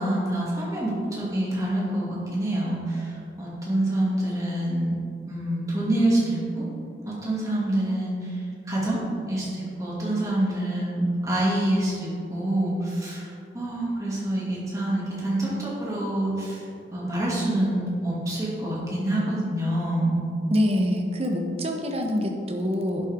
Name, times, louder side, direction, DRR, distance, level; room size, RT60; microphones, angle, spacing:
voice 1, 0.0-3.0 3.4-5.0 5.3-6.6 7.1-8.2 8.7-9.0 9.3-9.5 9.8-13.3 13.5-16.6 16.9-20.1, right 1 dB, 20° right, -6 dB, 2.4 m, -26 dB
voice 2, 20.5-23.0, equal, 35° right, 2 dB, 1.0 m, -25 dB
11.0 x 8.1 x 3.7 m, 2.5 s
head